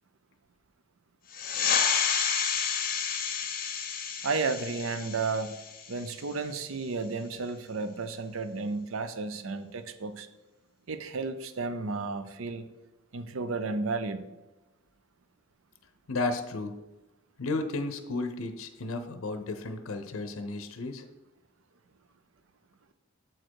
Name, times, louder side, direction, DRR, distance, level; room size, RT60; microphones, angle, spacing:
sound 1, 1.3-6.4, left 7 dB, 45° left, 0.6 m, -30 dB
voice 1, 4.2-5.6 5.9-10.3 10.9-12.6 13.1-14.2, right 4 dB, 80° right, 10 dB, 0.6 m, -32 dB
voice 2, 16.1-16.8 17.4-21.0, left 2 dB, 85° left, 8 dB, 0.6 m, -33 dB
7.6 x 4.5 x 4.6 m, 1.0 s
head